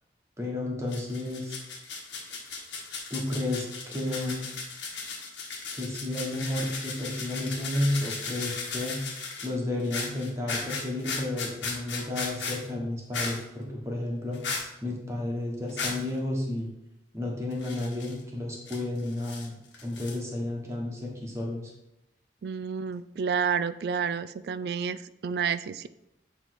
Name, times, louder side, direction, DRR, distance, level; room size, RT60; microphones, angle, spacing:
voice 1, 0.4-1.6 3.1-4.4 5.7-9.0 9.4-14.4 14.8-16.7 17.1-19.5 19.8-21.7, left 1 dB, 15° right, -1 dB, 1.4 m, -32 dB
sound 1, 0.9-9.5 9.8-12.7 13.1-13.4 14.3-14.7 15.7-16.1 17.5-18.2 18.7-19.5 19.7-20.2, left 4 dB, 90° left, 1.4 m, -36 dB
voice 2, 22.4-25.9, right 6 dB, 60° right, 14 dB, 0.3 m, -30 dB
8.7 x 3.4 x 4.7 m, 0.87 s
head